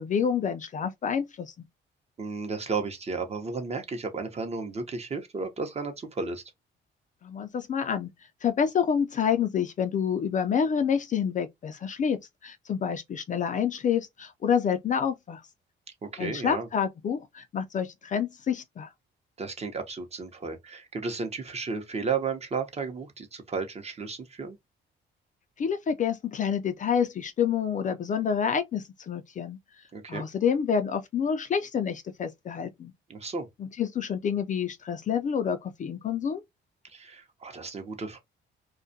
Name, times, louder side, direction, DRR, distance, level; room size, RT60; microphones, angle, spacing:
voice 1, 0.0-1.5 7.2-8.1 8.4-15.4 16.2-18.9 25.6-29.6 30.1-32.9 33.6-36.4, left 7 dB, 40° left, 0.4 m, -28 dB
voice 2, 2.2-6.4 16.0-16.7 19.4-24.6 29.9-30.3 33.1-33.5 36.9-38.2, right 4 dB, 30° right, 0.7 m, -33 dB
2.3 x 2.1 x 2.6 m
cardioid pair, 90°, 20 cm